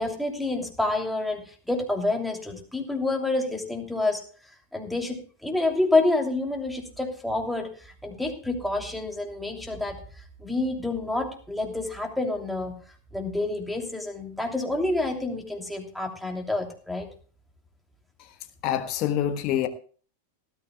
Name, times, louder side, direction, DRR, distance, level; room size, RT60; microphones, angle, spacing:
voice 1, 0.0-4.2 4.7-10.0 10.4-12.8 13.1-17.1, left 2 dB, ahead, 3.0 m, -28 dB
voice 2, 18.6-19.7, left 11 dB, 40° left, 1.3 m, -25 dB
18.5 x 13.0 x 2.3 m
figure-of-eight pair, 90°, 0 cm